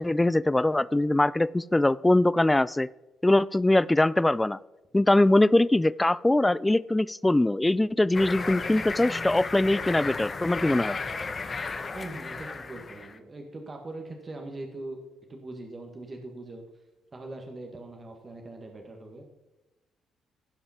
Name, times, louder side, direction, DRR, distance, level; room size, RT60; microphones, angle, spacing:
voice 1, 0.0-2.9 3.2-4.6 4.9-11.0, left 1 dB, 15° left, 19 dB, 0.4 m, -22 dB
sound 1, 8.1-13.2, left 4 dB, 35° left, 1.0 m, -34 dB
voice 2, 11.9-15.0 15.3-16.6 17.1-19.2, right 2 dB, 35° right, 2 dB, 1.9 m, -41 dB
16.5 x 5.5 x 4.4 m, 1.1 s
supercardioid pair, 65°, 0 cm